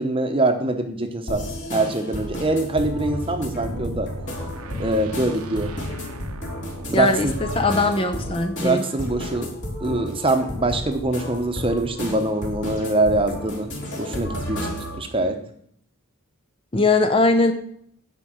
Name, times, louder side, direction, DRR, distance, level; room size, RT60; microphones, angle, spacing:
voice 1, 0.0-4.1 4.8-5.7 6.9-7.4 8.6-9.5 9.8-13.7 14.0-15.4, right 2 dB, 25° right, 7 dB, 0.9 m, -24 dB
sound 1, 1.3-15.0, equal, 50° left, 3.5 m, -32 dB
sound 2, 2.7-8.0, equal, 85° right, 0.9 m, -36 dB
voice 2, 6.9-8.8 16.7-17.5, left 3 dB, 25° left, 8 dB, 0.6 m, -20 dB
9.8 x 5.4 x 7.9 m, 0.67 s
head